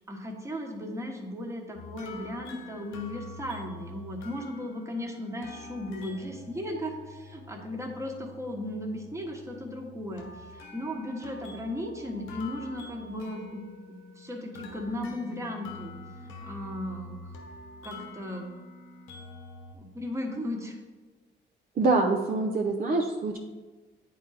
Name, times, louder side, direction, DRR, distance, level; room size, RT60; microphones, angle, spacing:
voice 1, 0.1-13.6 14.2-16.0 16.2-17.3 17.8-18.5 19.7-20.8, left 1 dB, 15° right, 1 dB, 1.2 m, -36 dB
sound 1, 1.7-19.8, left 3 dB, 85° left, 1.0 m, -46 dB
voice 2, 21.8-23.4, right 3 dB, 45° right, 2 dB, 0.6 m, -25 dB
8.9 x 3.9 x 4.1 m, 1.3 s
cardioid pair, 90°, 20 cm